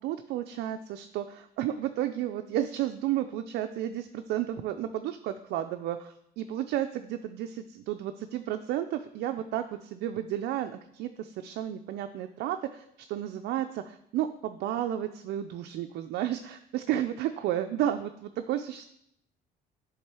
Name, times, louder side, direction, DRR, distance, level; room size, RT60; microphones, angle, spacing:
voice 1, 0.0-18.9, right 12 dB, 75° right, 7 dB, 0.4 m, -32 dB
8.3 x 3.7 x 4.7 m, 0.73 s
cardioid pair, 110°, 17 cm